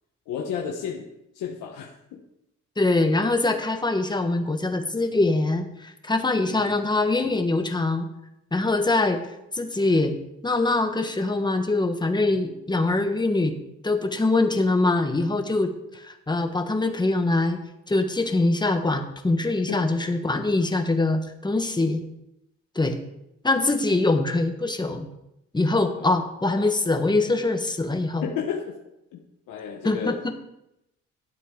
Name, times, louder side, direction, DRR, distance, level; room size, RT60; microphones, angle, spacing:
voice 1, 0.3-1.1 1.3-2.2 6.5-6.7 19.7-19.9 23.9-24.0 25.9-26.1 28.2-28.7 29.1-30.2, left 7 dB, 90° left, 0 dB, 1.2 m, -32 dB
voice 2, 2.8-8.1 8.5-9.2 9.5-10.1 10.4-13.6 13.8-17.6 17.9-22.0 22.7-23.0 23.4-25.1 25.5-28.2 29.8-30.3, left 2 dB, 15° left, 6 dB, 1.3 m, -23 dB
12.5 x 8.6 x 3.8 m, 0.85 s
cardioid pair, 90°, 30 cm